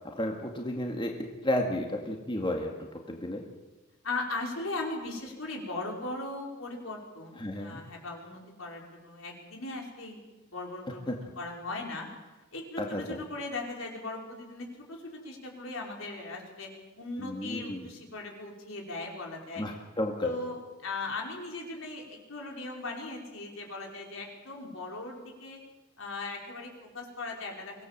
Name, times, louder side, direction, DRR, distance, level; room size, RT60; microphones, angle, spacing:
voice 1, 0.0-1.1 1.4-2.7 3.1-3.4 7.4-7.8 11.1-11.2 12.8-13.2 17.2-17.8 19.6-20.3, left 1 dB, 25° left, 1 dB, 2.1 m, -32 dB
voice 2, 4.0-10.2 10.5-12.1 12.5-16.7 17.0-19.7 20.2-25.6 26.0-27.9, left 2 dB, 70° left, 0 dB, 5.3 m, -38 dB
24.5 x 18.0 x 7.5 m, 1.2 s
head